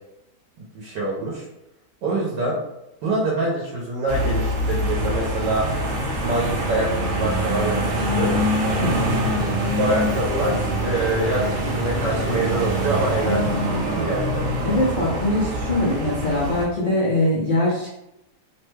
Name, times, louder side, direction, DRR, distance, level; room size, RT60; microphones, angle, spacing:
voice 1, 0.7-1.4 2.0-2.6 3.0-5.7 6.2-8.3 9.8-13.5 13.8-14.4 15.7-15.8, right 2 dB, 85° right, -4 dB, 1.4 m, -25 dB
sound 1, 4.1-16.6, equal, 60° right, 0.9 m, -24 dB
voice 2, 8.8-9.2 13.2-13.9 14.6-17.9, left 1 dB, 75° left, -6 dB, 0.4 m, -23 dB
3.2 x 2.2 x 3.2 m, 0.86 s
omnidirectional pair, 1.8 m